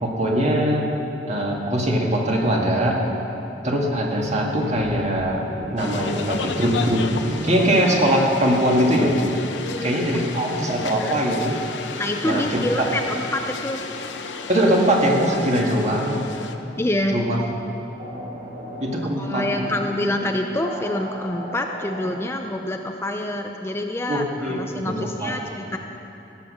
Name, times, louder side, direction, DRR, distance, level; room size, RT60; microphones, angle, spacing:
voice 1, 0.0-0.9 1.3-3.0 3.6-5.4 5.7-7.0 7.4-9.1 9.8-11.6 12.2-12.6 14.5-16.2 17.1-17.4 18.8-19.4 24.1-25.4, equal, 40° right, -1 dB, 1.8 m, -21 dB
sound 1, 4.4-8.6, right 2 dB, 80° right, 1.4 m, -36 dB
sound 2, 5.8-16.6, left 4 dB, 80° left, 0.8 m, -33 dB
voice 2, 9.6-10.8 12.0-13.8 16.8-17.2 19.2-25.8, left 1 dB, 15° left, 3 dB, 0.5 m, -27 dB
sound 3, 14.6-22.2, equal, 60° right, 3.2 m, -37 dB
16.0 x 8.2 x 6.3 m, 2.9 s
head